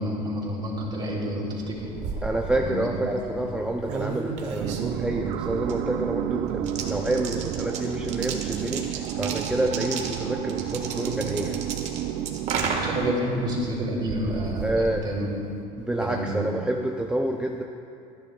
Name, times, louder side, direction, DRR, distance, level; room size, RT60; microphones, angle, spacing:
voice 1, 0.0-1.9 2.6-2.8 3.1-3.7 12.5-15.3 16.0-16.3, equal, 30° right, -3 dB, 3.3 m, -29 dB
sound 1, 1.6-15.6, right 5 dB, 50° right, 1.6 m, -35 dB
voice 2, 2.2-11.7 14.6-15.1 15.8-17.6, right 1 dB, 5° right, 2 dB, 0.5 m, -28 dB
sound 2, 4.6-13.2, right 12 dB, 65° right, 0.5 m, -31 dB
28.5 x 10.5 x 2.4 m, 2.6 s
cardioid pair, 125°, 15 cm